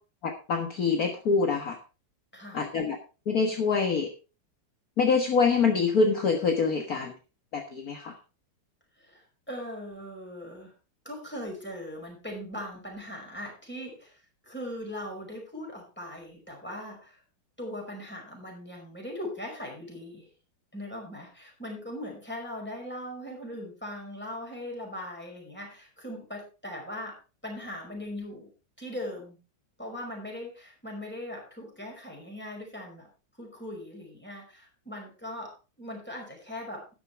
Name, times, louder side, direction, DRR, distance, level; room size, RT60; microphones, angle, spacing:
voice 1, 0.2-1.8 2.5-3.0 3.3-4.1 5.0-7.1 7.5-8.1, left 5 dB, 50° left, 3 dB, 1.8 m, -25 dB
voice 2, 2.3-2.7 9.0-10.7 11.1-17.2 17.6-20.3 20.7-28.5 28.8-29.4 29.8-33.1 33.4-36.9, left 1 dB, 5° left, 0 dB, 5.2 m, -40 dB
13.0 x 10.5 x 3.4 m, 0.33 s
omnidirectional pair, 2.0 m